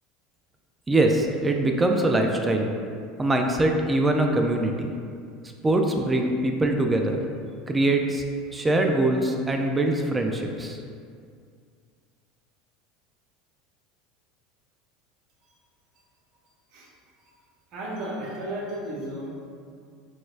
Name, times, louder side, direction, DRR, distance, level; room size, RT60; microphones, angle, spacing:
voice 1, 0.9-2.7 3.2-4.9 5.6-7.2 7.7-8.2 8.5-10.8, right 2 dB, 15° right, 3 dB, 0.3 m, -23 dB
voice 2, 17.7-19.3, right 1 dB, 55° right, -4 dB, 0.8 m, -34 dB
4.1 x 2.2 x 2.4 m, 2.2 s
hypercardioid pair, 90°, 0 cm